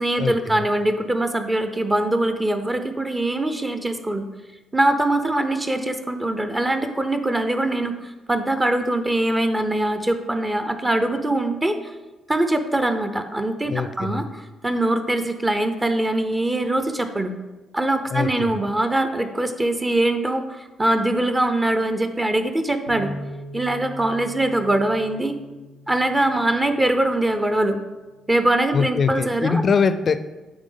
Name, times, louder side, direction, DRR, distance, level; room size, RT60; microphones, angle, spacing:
voice 1, 0.0-4.3 4.7-11.9 12.3-17.3 17.7-23.1 23.5-25.4 25.9-27.8 28.3-29.6, right 1 dB, 20° right, 8 dB, 0.5 m, -22 dB
voice 2, 13.7-14.3 18.1-18.6 28.7-30.2, left 5 dB, 45° left, 12 dB, 0.3 m, -22 dB
Bass guitar, 22.9-27.3 27.9-29.1, equal, 85° right, 1.5 m, -40 dB
8.8 x 3.4 x 3.8 m, 1.2 s
cardioid pair, 90°, 0 cm